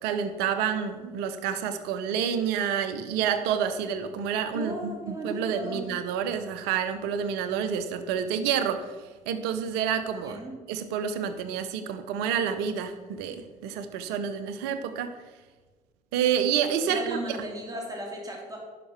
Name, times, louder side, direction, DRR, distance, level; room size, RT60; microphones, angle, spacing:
voice 1, 0.0-8.9 9.3-10.4 10.7-15.2 16.1-17.2, right 8 dB, 70° right, 10 dB, 0.8 m, -28 dB
voice 2, 4.5-5.8 10.2-10.6 16.8-18.6, right 1 dB, 20° right, -1 dB, 3.4 m, -36 dB
10.0 x 5.9 x 6.1 m, 1.3 s
hypercardioid pair, 50°, 17 cm